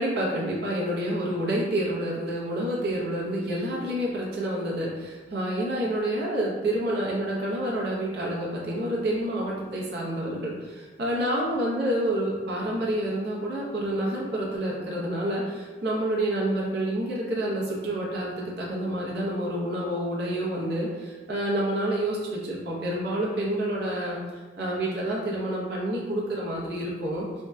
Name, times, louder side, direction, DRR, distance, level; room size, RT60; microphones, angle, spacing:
voice 1, 0.0-24.2 24.6-27.3, right 1 dB, 60° right, -4 dB, 0.6 m, -28 dB
2.6 x 2.1 x 2.2 m, 1.3 s
head